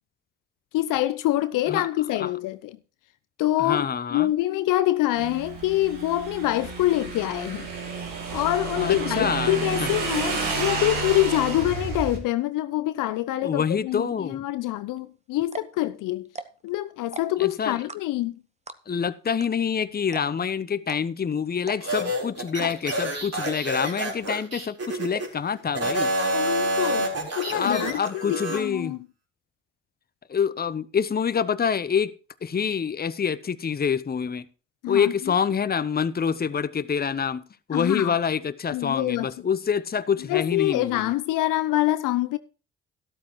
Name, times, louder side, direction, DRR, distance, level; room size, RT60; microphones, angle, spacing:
voice 1, 0.7-2.8 3.4-3.9 4.1-7.7 8.3-16.3 16.6-18.3 26.3-29.0 34.8-35.3 37.7-38.1 38.7-39.3 40.3-42.4, left 15 dB, 65° left, 0.7 m, -25 dB
voice 2, 3.6-4.3 8.8-9.9 13.4-14.4 17.4-17.8 18.9-26.1 27.5-29.0 30.3-32.1 32.4-34.5 34.9-37.4 37.7-41.1, left 7 dB, 25° left, 0.8 m, -26 dB
Motorcycle / Engine, 5.2-12.2, right 4 dB, 70° right, 2.6 m, -31 dB
sound 1, 15.0-15.1 15.4-15.8 16.2-16.7 17.0-17.5 17.9-18.3 18.7-19.0 19.4-19.5 19.7-19.8 20.1-20.5 20.9-21.0 21.6-22.0 22.5-22.7 23.0-23.1 23.4-23.8 24.2-24.6 25.1-25.5 26.0-26.1 26.4-26.5 26.8-27.2 27.5-28.1, right 3 dB, 20° right, 1.1 m, -38 dB
sound 2, 21.8-25.3 25.7-28.6, right 1 dB, 45° right, 4.1 m, -28 dB
12.5 x 12.0 x 3.1 m
hypercardioid pair, 45°, 34 cm